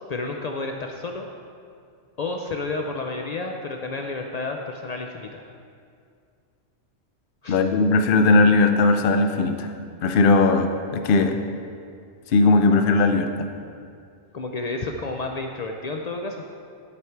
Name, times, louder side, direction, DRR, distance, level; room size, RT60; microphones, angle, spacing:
voice 1, 0.1-1.3 2.2-5.5 7.4-7.6 14.3-16.4, left 3 dB, 80° left, 3 dB, 0.3 m, -31 dB
voice 2, 7.5-9.7 10.0-11.4 12.3-13.5, left 3 dB, 55° left, 7 dB, 0.7 m, -18 dB
11.0 x 5.2 x 4.5 m, 2.3 s
omnidirectional pair, 1.3 m